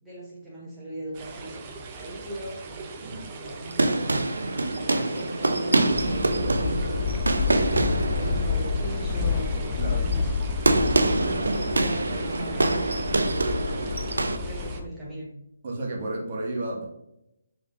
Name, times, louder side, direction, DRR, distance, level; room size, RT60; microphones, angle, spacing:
voice 1, 0.0-7.3 7.8-10.3 11.0-13.8 14.4-15.3, right 1 dB, ahead, -10 dB, 0.9 m, -39 dB
sound 1, 1.1-14.8, right 4 dB, 25° right, 0.5 m, -41 dB
sound 2, 3.5-14.4, right 2 dB, 90° right, 0.4 m, -26 dB
sound 3, 5.9-14.9, left 5 dB, 30° left, 0.3 m, -29 dB
voice 2, 9.8-10.1 15.6-16.8, right 2 dB, 45° right, -1 dB, 1.2 m, -32 dB
3.6 x 3.1 x 3.0 m, 0.83 s
hypercardioid pair, 160°, 0 cm